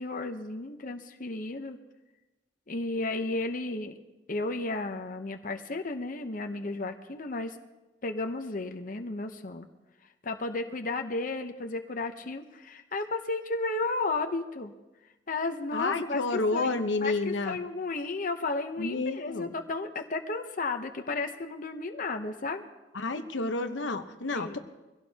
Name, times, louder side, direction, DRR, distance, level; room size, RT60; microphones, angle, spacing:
voice 1, 0.0-1.8 2.7-3.9 4.3-7.6 8.0-9.7 10.2-14.7 15.3-16.7 17.0-22.6 24.3-24.6, left 3 dB, 45° left, 5 dB, 0.8 m, -33 dB
voice 2, 15.7-17.6 18.8-19.5 22.9-24.6, left 3 dB, 80° left, 7 dB, 1.0 m, -30 dB
23.5 x 16.5 x 2.9 m, 1.1 s
head